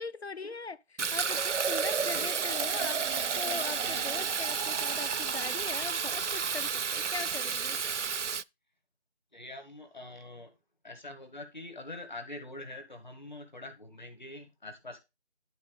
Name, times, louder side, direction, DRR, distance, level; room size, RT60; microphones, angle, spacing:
voice 1, 0.0-3.0 3.4-7.8, left 4 dB, 65° left, 0.7 m, -40 dB
Fill (with liquid), 1.0-8.4, right 6 dB, 85° right, 0.5 m, -31 dB
voice 2, 1.7-2.3 2.6-2.8 3.8-4.3 9.3-10.5 10.8-15.0, left 2 dB, 40° left, 2.0 m, -45 dB
12.0 x 4.0 x 5.1 m
figure-of-eight pair, 175°, 34 cm